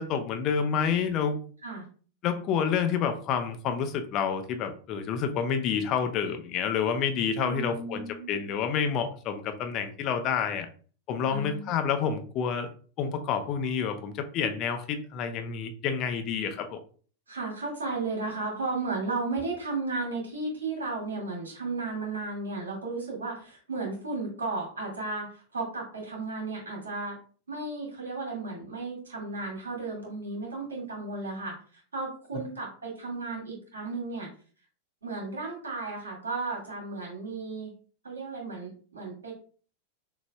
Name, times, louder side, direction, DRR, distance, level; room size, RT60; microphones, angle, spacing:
voice 1, 0.0-1.4 2.2-10.7 11.1-12.7 13.0-16.8, left 7 dB, 35° left, 7 dB, 0.7 m, -29 dB
voice 2, 7.4-8.5 11.2-11.7 17.3-27.2 27.5-34.3 35.0-37.7 38.0-39.3, right 3 dB, 70° right, -2 dB, 2.2 m, -34 dB
6.5 x 3.0 x 2.3 m, 0.42 s
figure-of-eight pair, 90°, 0 cm